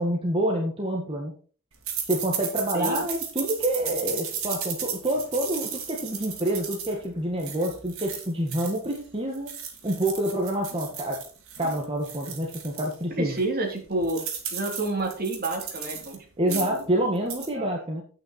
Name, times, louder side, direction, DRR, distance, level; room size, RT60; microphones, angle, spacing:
voice 1, 0.0-1.3 2.1-9.5 9.8-11.2 11.6-13.3 16.4-18.0, right 1 dB, 25° right, 0 dB, 1.6 m, -27 dB
sound 1, 1.9-9.0 9.3-12.9 13.4-13.5 13.7-16.2 16.4-16.8 17.2-17.5, right 7 dB, 85° right, 2.9 m, -35 dB
voice 2, 2.7-3.1 13.2-14.2 14.5-16.8 17.5-17.7, right 2 dB, 45° right, 2 dB, 3.0 m, -29 dB
9.0 x 8.9 x 4.3 m, 0.40 s
head